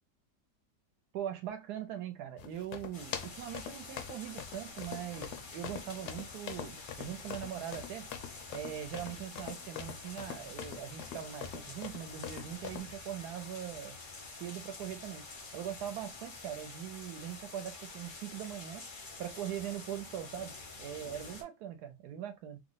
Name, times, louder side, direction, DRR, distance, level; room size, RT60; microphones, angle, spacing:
voice 1, 1.1-8.1 8.5-14.0 14.3-15.3 15.5-18.8 19.2-22.6, right 10 dB, 75° right, 1.1 m, -41 dB
sound 1, 2.4-13.0, left 9 dB, 75° left, 1.0 m, -44 dB
sound 2, 2.9-21.4, left 3 dB, 50° left, 0.6 m, -48 dB
3.1 x 2.0 x 3.8 m
omnidirectional pair, 1.8 m